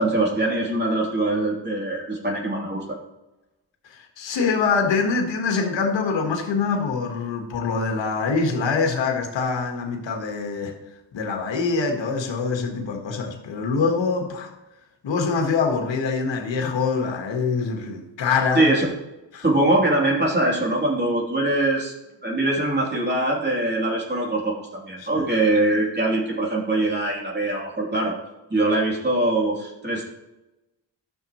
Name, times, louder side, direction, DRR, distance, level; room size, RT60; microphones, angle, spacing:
voice 1, 0.0-3.0 18.5-18.9 19.4-21.9 22.2-28.1 28.5-30.0, right 2 dB, 20° right, -3 dB, 3.0 m, -22 dB
voice 2, 3.8-10.8 11.1-14.5 15.0-18.7 19.3-19.4 25.0-25.3, left 4 dB, 75° left, 2 dB, 1.5 m, -24 dB
13.0 x 6.4 x 3.1 m, 0.98 s
cardioid pair, 60°, 45 cm